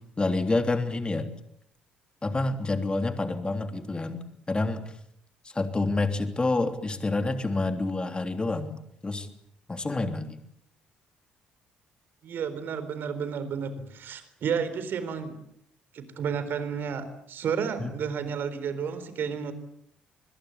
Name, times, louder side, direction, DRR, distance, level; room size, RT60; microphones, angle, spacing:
voice 1, 0.2-1.3 2.2-4.8 5.4-9.3 9.7-10.4 17.8-17.9, left 2 dB, 25° left, 7 dB, 3.2 m, -28 dB
voice 2, 12.2-15.4 15.9-19.5, right 7 dB, 55° right, 12 dB, 4.1 m, -31 dB
25.5 x 21.5 x 8.5 m, 0.71 s
hypercardioid pair, 50°, 4 cm